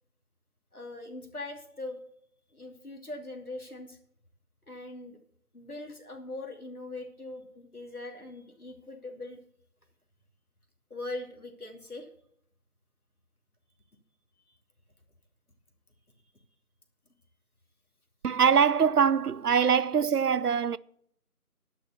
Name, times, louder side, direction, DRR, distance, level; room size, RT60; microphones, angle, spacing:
voice 1, 0.7-2.0 2.5-4.0 4.7-5.2 5.5-9.4 10.9-12.1, left 2 dB, 75° left, 2.8 m, -41 dB
voice 2, 18.2-20.8, right 7 dB, 85° right, 0.6 m, -23 dB
11.0 x 6.9 x 6.9 m
figure-of-eight pair, 170°, 45 cm